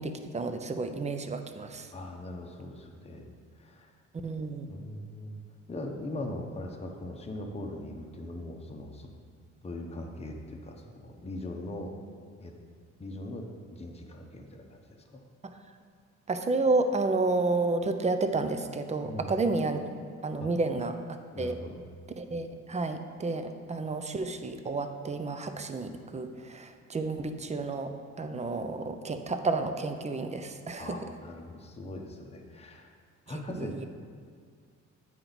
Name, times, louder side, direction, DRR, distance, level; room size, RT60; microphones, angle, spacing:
voice 1, 0.0-1.9 4.2-4.7 16.3-19.9 20.2-20.9 21.4-21.5 22.2-27.9 28.2-31.0 33.5-33.9, right 3 dB, 25° right, 8 dB, 0.5 m, -31 dB
voice 2, 1.9-3.3 3.6-3.9 4.7-5.4 5.7-9.1 9.6-11.9 12.4-12.5 13.0-15.2 19.0-19.4 20.4-20.5 21.3-21.8 30.8-32.9 33.3-33.9, left 1 dB, 20° left, 2 dB, 0.8 m, -40 dB
8.6 x 4.5 x 4.0 m, 2.1 s
cardioid pair, 90°, 30 cm